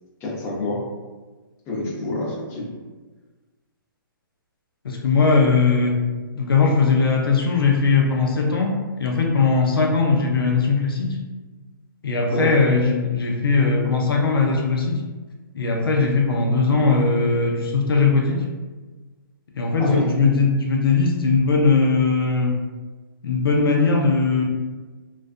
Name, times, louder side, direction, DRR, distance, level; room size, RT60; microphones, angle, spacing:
voice 1, 0.2-0.8 1.7-2.7 12.3-12.5 19.8-20.1, left 1 dB, 25° left, -5 dB, 0.7 m, -26 dB
voice 2, 4.8-6.0 6.3-11.2 12.0-15.0 15.5-18.4 19.5-22.6 23.2-24.4, left 4 dB, 85° left, 1 dB, 0.5 m, -19 dB
2.4 x 2.2 x 2.4 m, 1.3 s
hypercardioid pair, 140°, 12 cm